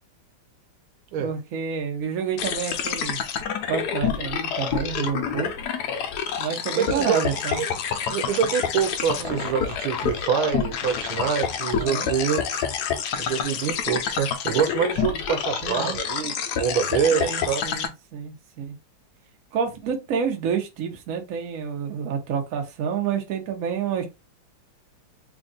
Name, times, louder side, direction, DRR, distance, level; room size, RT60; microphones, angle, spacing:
voice 1, 1.2-3.2 3.7-5.5 6.4-7.6 9.2-9.4 11.8-12.1 15.6-16.0 17.1-18.8 19.5-24.1, right 7 dB, 55° right, 1.0 m, -29 dB
sound 1, 2.4-17.9, left 7 dB, 75° left, 0.9 m, -28 dB
voice 2, 6.8-7.7 8.1-12.4 13.2-17.6, right 7 dB, 80° right, 1.4 m, -26 dB
3.4 x 2.4 x 3.9 m
omnidirectional pair, 2.3 m